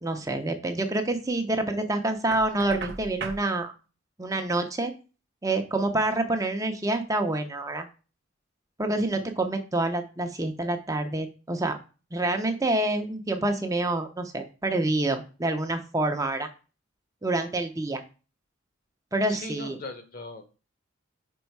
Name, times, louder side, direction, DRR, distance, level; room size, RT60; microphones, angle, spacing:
voice 1, 0.0-3.7 4.2-4.9 5.4-7.9 8.8-11.8 12.1-16.5 17.2-18.0 19.1-19.8, right 2 dB, 15° right, 5 dB, 0.6 m, -27 dB
Knock, 2.3-3.5, right 4 dB, 55° right, 0.7 m, -37 dB
voice 2, 19.3-20.5, left 2 dB, 45° left, 7 dB, 1.1 m, -39 dB
5.3 x 4.5 x 4.6 m, 0.33 s
head